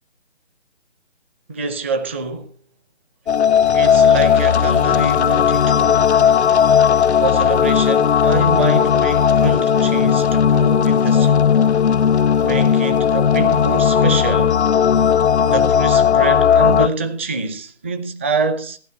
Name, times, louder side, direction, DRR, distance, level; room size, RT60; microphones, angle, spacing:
voice 1, 1.5-2.5 3.7-6.1 7.2-11.6 12.4-14.7 15.4-18.8, right 3 dB, 10° right, 0.5 m, -25 dB
sound 1, 3.3-16.9, left 8 dB, 70° left, 0.7 m, -15 dB
15.0 x 12.0 x 4.4 m
figure-of-eight pair, 145°, 34 cm